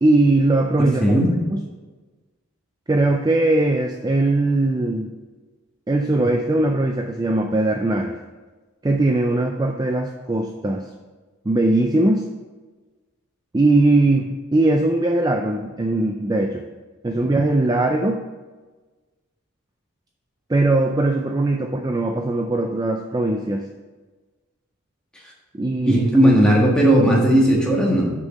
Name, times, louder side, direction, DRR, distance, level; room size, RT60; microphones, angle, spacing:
voice 1, 0.0-1.2 1.5-1.6 2.9-5.1 5.9-8.2 8.8-10.9 11.5-12.3 13.5-16.6 17.0-18.2 20.5-23.6 25.5-26.4, right 2 dB, 20° right, 3 dB, 0.4 m, -20 dB
voice 2, 0.8-1.3 25.8-28.1, right 1 dB, 5° left, -4 dB, 1.6 m, -16 dB
6.4 x 5.4 x 6.3 m, 1.3 s
head